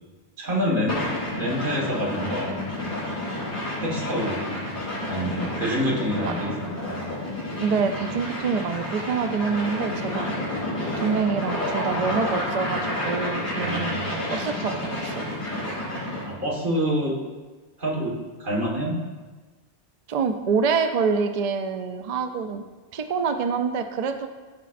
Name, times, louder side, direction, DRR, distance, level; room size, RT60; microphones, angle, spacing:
voice 1, 0.4-1.0 1.4-3.1 3.8-4.4 5.1-7.1 13.5-14.1 16.2-17.2 17.8-19.0, equal, 50° right, -3 dB, 1.7 m, -27 dB
sound 1, 0.9-16.3, left 1 dB, 55° left, 2.8 m, -30 dB
voice 2, 7.6-10.3 11.0-15.3 20.1-22.7 22.9-24.3, right 5 dB, 65° right, 7 dB, 0.3 m, -26 dB
13.0 x 5.1 x 2.5 m, 1.3 s
omnidirectional pair, 1.2 m